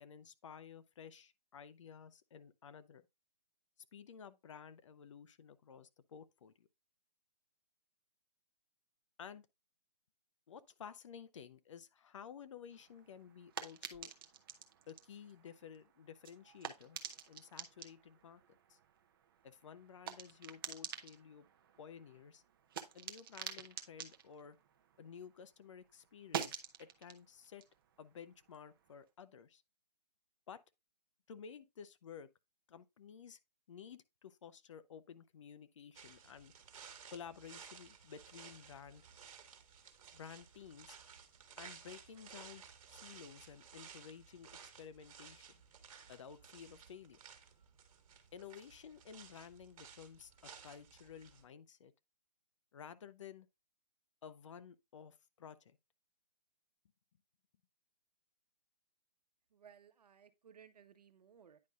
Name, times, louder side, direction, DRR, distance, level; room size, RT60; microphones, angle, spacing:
voice 1, 0.0-3.0 3.9-6.7 9.2-9.5 10.5-14.1 14.9-17.0 17.3-18.8 19.4-21.5 21.8-22.4 22.9-24.6 25.0-27.7 28.0-29.6 30.5-30.6 31.3-32.3 32.7-33.4 33.7-36.5 37.1-39.0 40.1-41.0 41.6-44.5 44.8-45.5 46.1-47.2 48.3-50.3 50.6-51.9 52.7-53.5 54.2-55.8, left 7 dB, 50° left, 0.6 m, -53 dB
sound 1, 12.7-25.5 25.8-29.0, right 9 dB, 35° right, 0.7 m, -49 dB
sound 2, 35.9-51.4, right 7 dB, 55° right, 1.5 m, -57 dB
voice 2, 59.5-61.6, right 8 dB, 70° right, 1.0 m, -61 dB
9.6 x 5.3 x 2.4 m
hypercardioid pair, 160°, 21 cm